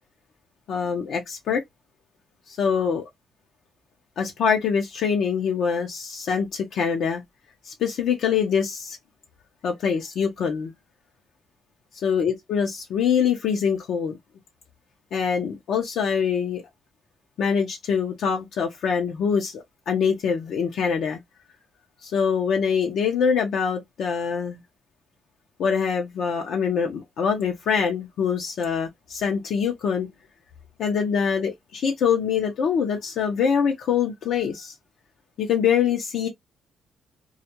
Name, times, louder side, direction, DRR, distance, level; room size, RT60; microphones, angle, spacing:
voice 1, 0.7-1.6 2.5-3.0 4.2-7.2 7.6-9.0 9.6-10.7 12.0-14.2 15.1-16.6 17.4-21.2 22.0-24.6 25.6-30.1 30.8-34.7 35.4-36.3, left 7 dB, 70° left, 0.6 m, -24 dB
2.3 x 2.1 x 2.8 m
cardioid pair, 90°, 0 cm